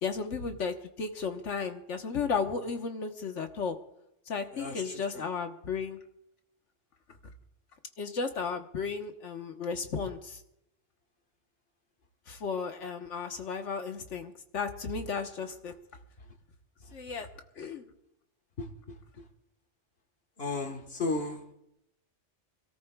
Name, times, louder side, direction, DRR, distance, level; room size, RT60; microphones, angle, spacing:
voice 1, 0.0-3.8 4.3-6.0 8.0-10.4 12.3-15.7 16.9-17.3 17.6-17.9, left 5 dB, 80° left, 5 dB, 1.5 m, -34 dB
voice 2, 4.5-5.2 18.6-18.7 20.4-21.5, left 3 dB, 55° left, 3 dB, 1.7 m, -34 dB
27.5 x 13.5 x 2.3 m, 0.81 s
omnidirectional pair, 1.2 m